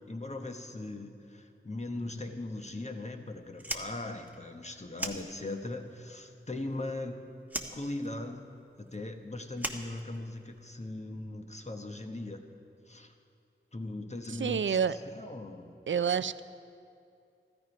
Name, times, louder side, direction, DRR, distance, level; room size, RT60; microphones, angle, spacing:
voice 1, 0.0-7.2 7.7-8.5 8.8-12.4 12.9-13.1 13.7-15.8, left 2 dB, 35° left, 5 dB, 1.1 m, -39 dB
Fire, 3.5-5.8 6.1-7.1 7.5-10.6, right 1 dB, 10° right, 1.1 m, -40 dB
voice 2, 14.3-15.0 15.9-16.4, right 7 dB, 75° right, 14 dB, 0.4 m, -28 dB
14.5 x 13.0 x 5.2 m, 2.5 s
wide cardioid pair, 50°, 20 cm